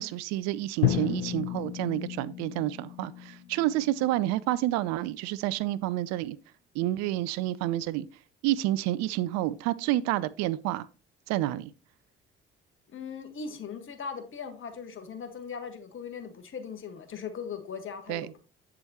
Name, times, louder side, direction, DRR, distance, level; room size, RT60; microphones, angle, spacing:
voice 1, 0.0-6.4 6.7-8.1 8.4-10.9 11.3-11.7 18.1-18.3, right 15 dB, 55° right, 0.5 m, -29 dB
Drum, 0.8-4.8, left 13 dB, 80° left, 0.8 m, -33 dB
voice 2, 12.9-18.4, left 6 dB, 40° left, 1.5 m, -39 dB
7.9 x 7.4 x 2.9 m
figure-of-eight pair, 50°, 31 cm